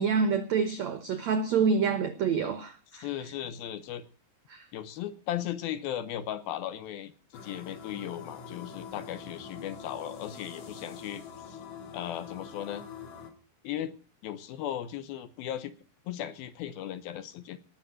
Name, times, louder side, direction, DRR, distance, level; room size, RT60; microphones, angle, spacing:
voice 1, 0.0-3.1 4.5-4.7, right 5 dB, 85° right, 1.5 m, -27 dB
voice 2, 2.9-4.0 4.7-11.6 11.9-12.8 13.6-14.0 14.2-15.7 16.1-17.6, left 11 dB, 75° left, 2.6 m, -37 dB
sound 1, 7.3-13.3, left 6 dB, 50° left, 3.1 m, -44 dB
19.0 x 7.2 x 7.7 m
omnidirectional pair, 4.7 m